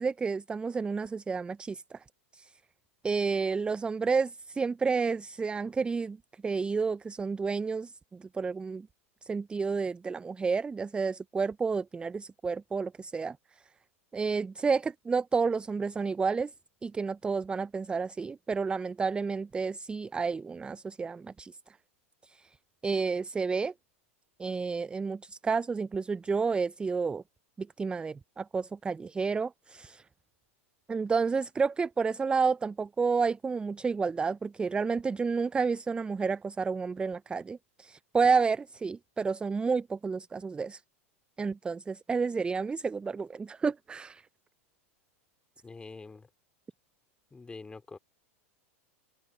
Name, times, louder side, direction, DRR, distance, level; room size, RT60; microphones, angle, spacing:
voice 1, 0.0-2.0 2.3-2.5 3.0-6.2 6.4-8.9 9.2-13.4 14.1-16.5 16.8-21.6 22.2-22.5 22.8-23.7 24.4-27.2 27.6-30.0 30.9-40.8 41.4-44.3, right 5 dB, 15° right, 0.4 m, -30 dB
voice 2, 45.6-46.3 47.3-48.0, left 4 dB, 15° left, 3.5 m, -45 dB
open air
hypercardioid pair, 95°, 7 cm